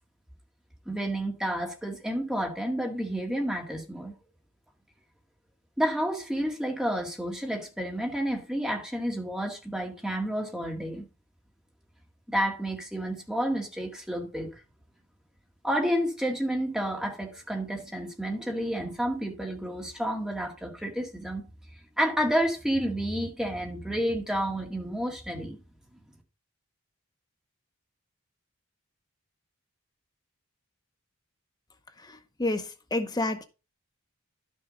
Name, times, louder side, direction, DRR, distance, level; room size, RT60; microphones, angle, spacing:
voice 1, 0.9-4.1 5.8-11.1 12.3-14.5 15.6-21.4 22.0-25.6, equal, 5° right, 1.9 m, -30 dB
voice 2, 32.4-33.4, left 2 dB, 20° left, 0.7 m, -28 dB
11.5 x 6.4 x 3.8 m
head